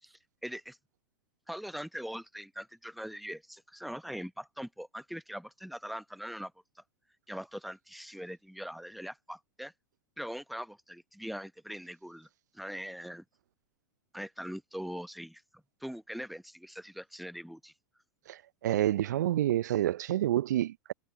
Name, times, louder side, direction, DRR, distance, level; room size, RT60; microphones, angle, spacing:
voice 1, 0.0-0.8 1.5-6.8 7.3-9.7 10.2-12.3 12.5-13.2 14.1-17.7, equal, ahead, 1.1 m, -42 dB
voice 2, 18.3-20.9, right 13 dB, 65° right, 0.6 m, -28 dB
figure-of-eight pair, 95°, 10 cm